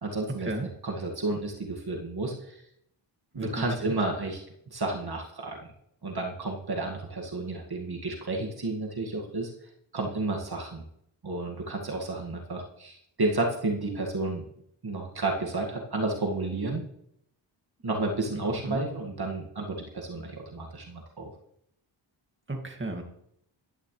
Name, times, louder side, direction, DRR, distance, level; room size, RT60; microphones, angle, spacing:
voice 1, 0.0-0.5 0.8-2.6 3.3-4.4 4.7-5.6 6.0-9.5 9.9-10.8 11.2-14.4 14.8-16.8 17.8-21.3, right 2 dB, 50° right, 0 dB, 2.1 m, -31 dB
voice 2, 3.3-3.9 18.3-18.8 22.5-23.0, right 2 dB, 25° right, 2 dB, 2.2 m, -34 dB
14.5 x 11.5 x 3.3 m, 0.75 s
cardioid pair, 70°, 47 cm